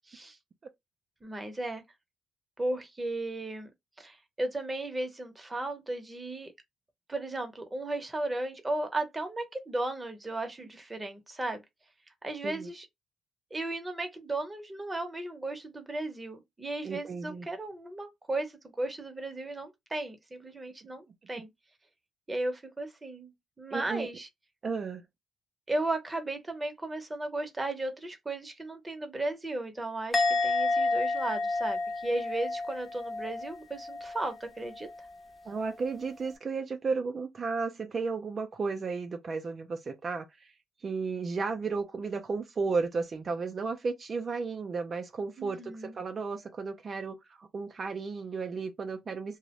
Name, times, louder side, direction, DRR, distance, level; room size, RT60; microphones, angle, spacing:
voice 1, 0.1-0.4 1.2-1.8 2.6-3.7 4.0-6.5 7.1-11.6 12.2-12.9 13.5-21.5 22.3-24.3 25.7-34.9 45.4-45.9, right 2 dB, 20° right, 0.7 m, -35 dB
voice 2, 16.8-17.5 23.7-24.1 24.6-25.0 35.5-40.5 40.8-49.4, right 4 dB, 40° right, 0.4 m, -34 dB
Musical instrument, 30.1-33.5 33.8-34.2, left 3 dB, 15° left, 0.7 m, -29 dB
2.4 x 2.0 x 2.9 m
cardioid pair, 90°, 0 cm